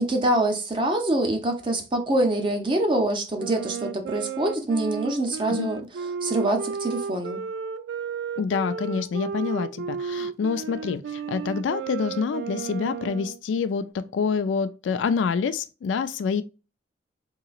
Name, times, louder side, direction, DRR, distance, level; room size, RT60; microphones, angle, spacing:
voice 1, 0.0-5.8 6.2-7.4, right 1 dB, 25° right, 0.6 m, -25 dB
Wind instrument woodwind instrument, 3.4-13.4, right 6 dB, 85° right, 0.3 m, -33 dB
voice 2, 8.4-16.4, left 5 dB, 85° left, 0.3 m, -27 dB
3.8 x 2.9 x 2.4 m
head